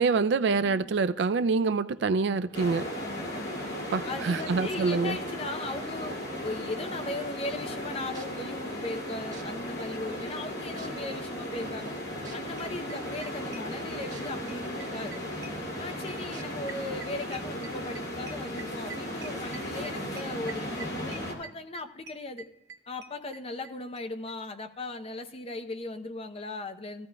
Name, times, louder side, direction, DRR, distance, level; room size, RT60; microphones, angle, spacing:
voice 1, 0.0-2.9 3.9-5.2, right 4 dB, 65° right, 12 dB, 0.4 m, -26 dB
voice 2, 0.6-0.9 2.9-3.7 4.1-12.0 12.3-15.2 15.8-22.5 22.9-27.1, left 2 dB, 30° left, 7 dB, 0.6 m, -38 dB
sound 1, 2.5-21.3, left 1 dB, 60° left, 2.5 m, -36 dB
sound 2, 8.1-8.4 9.3-9.4 10.2-10.3 10.8-11.1 12.2-12.4 14.1-14.2 14.7-14.8 16.3-16.4 17.2-17.3, right 7 dB, 40° right, 1.7 m, -48 dB
sound 3, 11.9-12.0 12.3-12.4 12.6-14.2 14.5-23.7 24.0-24.1 24.3-24.4 24.6-24.7, right 4 dB, 85° right, 0.8 m, -45 dB
15.5 x 14.0 x 2.3 m, 0.78 s
head